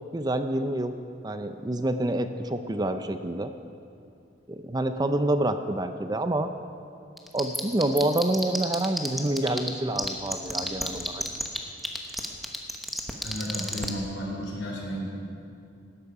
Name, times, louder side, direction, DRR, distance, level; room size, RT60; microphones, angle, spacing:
voice 1, 0.1-1.0 1.2-3.5 4.5-6.5 7.3-11.2, right 1 dB, 20° right, 9 dB, 0.5 m, -27 dB
sound 1, 7.2-9.7 9.9-13.9, equal, ahead, 1.0 m, -29 dB
voice 2, 13.2-15.1, equal, 80° left, -2 dB, 3.9 m, -33 dB
17.5 x 12.5 x 4.8 m, 2.5 s
head